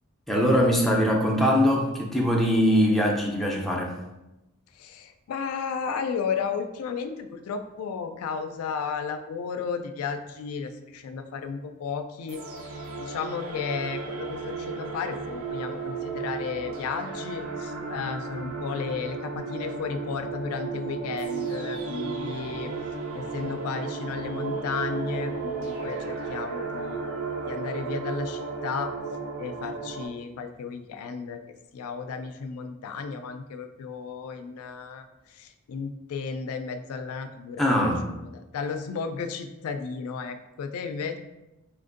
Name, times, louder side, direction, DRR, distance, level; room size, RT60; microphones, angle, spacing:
voice 1, 0.3-4.0 37.6-38.1, equal, ahead, -2 dB, 0.4 m, -22 dB
voice 2, 4.7-12.4 12.7-22.7 23.1-28.9 29.4-31.4 31.7-41.2, left 5 dB, 80° left, 7 dB, 0.3 m, -34 dB
sound 1, 12.3-30.1, right 4 dB, 70° right, 0.5 m, -34 dB
4.3 x 2.5 x 2.5 m, 0.96 s
head